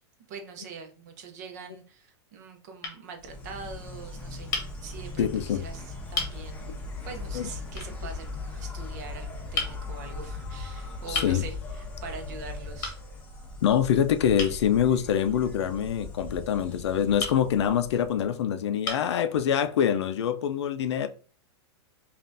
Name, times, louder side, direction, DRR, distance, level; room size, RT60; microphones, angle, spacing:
voice 1, 0.3-4.5 4.8-6.7 7.1-12.9, right 4 dB, 40° right, 0.7 m, -43 dB
sound 1, 1.0-1.7 2.4-2.5 2.8-3.0 4.5-4.7 5.5-5.6 6.1-6.4 7.8-7.9 9.5-9.8 11.1-11.4 12.8-13.0 14.4-14.6 17.2-17.4 18.2-18.3 18.8-19.1, left 4 dB, 45° left, 1.1 m, -32 dB
Insect, 3.2-18.3, left 2 dB, 10° left, 0.4 m, -39 dB
voice 2, 5.2-5.6 7.3-7.5 11.1-11.4 13.6-21.1, left 9 dB, 75° left, 0.4 m, -25 dB
5.3 x 2.4 x 2.6 m
supercardioid pair, 180°, 14 cm